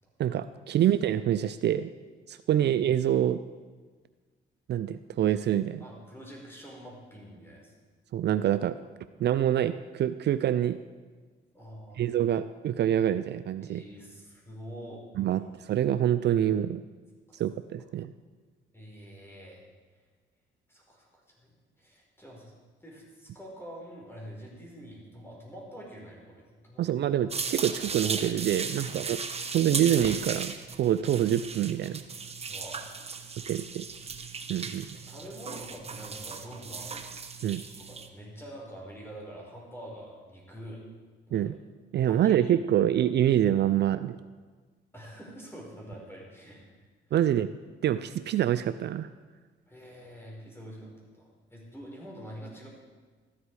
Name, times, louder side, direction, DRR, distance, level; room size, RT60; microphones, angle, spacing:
voice 1, 0.2-1.9 2.3-3.4 4.7-5.8 8.1-8.8 9.2-10.8 12.0-13.8 15.2-16.8 17.3-18.1 26.8-29.2 29.5-32.0 33.5-33.9 34.5-34.9 37.4-37.6 41.3-41.6 41.9-44.2 47.1-47.5 47.8-49.1, right 11 dB, 60° right, 13 dB, 0.4 m, -26 dB
voice 2, 5.8-7.7 11.5-12.1 13.6-15.0 15.3-15.4 17.3-17.4 18.7-19.6 20.7-21.1 21.4-21.5 21.8-22.5 22.8-27.1 28.5-29.0 32.4-33.1 33.4-33.7 34.9-36.9 37.4-40.8 41.3-41.5 42.0-42.8 44.9-46.7 49.7-52.7, equal, 10° left, -3 dB, 4.8 m, -46 dB
sound 1, 27.3-38.1, right 5 dB, 30° right, 1.0 m, -37 dB
13.5 x 11.5 x 4.8 m, 1.4 s
cardioid pair, 90°, 20 cm